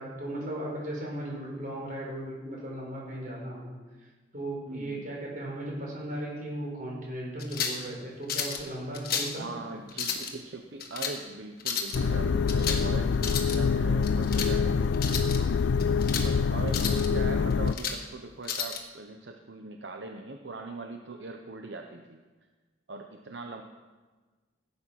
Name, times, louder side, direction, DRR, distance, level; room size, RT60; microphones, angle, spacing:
voice 1, 0.0-3.7 4.3-9.5, right 1 dB, 50° right, -2 dB, 4.6 m, -36 dB
voice 2, 4.7-5.1 9.3-15.4 16.2-22.2 22.9-23.6, right 3 dB, 75° right, 4 dB, 0.9 m, -41 dB
sound 1, 7.4-7.8 8.3-8.6 8.9-9.4 9.9-10.3 10.8-11.2 11.6-12.0 12.5-12.9 13.1-13.6 14.0-14.5 14.9-15.4 15.8-16.3 16.7-17.1 17.5-18.0 18.4-18.8, left 6 dB, 55° left, 1.5 m, -32 dB
sound 2, 11.9-17.7, left 5 dB, 80° left, 0.4 m, -25 dB
15.5 x 8.6 x 5.8 m, 1.3 s
head